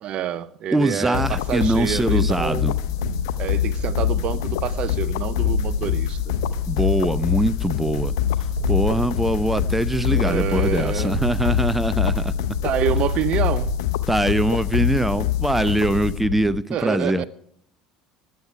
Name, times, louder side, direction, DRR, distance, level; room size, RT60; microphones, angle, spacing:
voice 1, 0.0-2.6 3.4-6.3 10.1-11.1 12.6-13.7 16.7-17.3, right 10 dB, 45° right, 0.6 m, -27 dB
voice 2, 0.7-2.7 6.7-8.1 8.7-12.3 14.1-17.3, right 1 dB, 5° right, 0.7 m, -22 dB
sound 1, 1.1-16.6, left 13 dB, 65° left, 0.8 m, -25 dB
sound 2, 2.2-13.8, right 5 dB, 65° right, 1.6 m, -32 dB
20.0 x 8.4 x 4.7 m
figure-of-eight pair, 65°, 2 cm